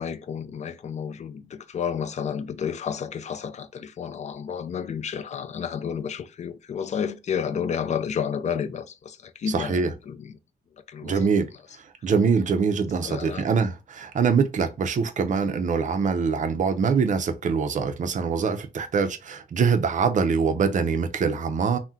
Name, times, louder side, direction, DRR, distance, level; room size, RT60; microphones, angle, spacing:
voice 1, 0.0-10.4 10.9-11.2 13.0-13.5, left 7 dB, 45° left, 0.4 m, -31 dB
voice 2, 9.5-9.9 11.0-11.5 11.8-21.8, right 5 dB, 50° right, 0.5 m, -24 dB
3.5 x 2.1 x 2.7 m
wide cardioid pair, 150°, 17 cm